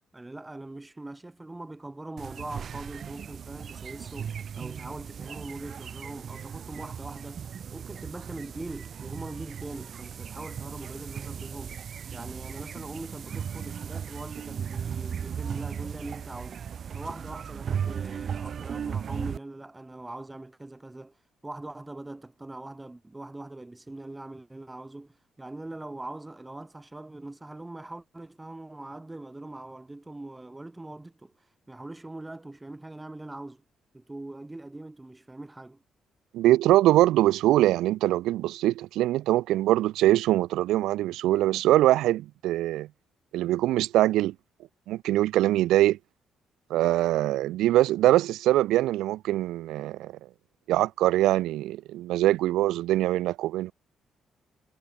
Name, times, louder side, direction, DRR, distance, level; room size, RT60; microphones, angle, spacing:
voice 1, 0.1-11.8 12.1-16.6 16.9-21.2 21.4-31.3 31.7-33.6 33.9-35.8, right 2 dB, 15° right, 2.5 m, -42 dB
sound 1, 2.2-19.4, right 8 dB, 55° right, 2.2 m, -37 dB
voice 2, 36.3-42.9 43.3-44.3 44.9-46.0 46.7-50.1 50.7-53.7, right 15 dB, 90° right, 0.6 m, -23 dB
cardioid pair, 90°, 0 cm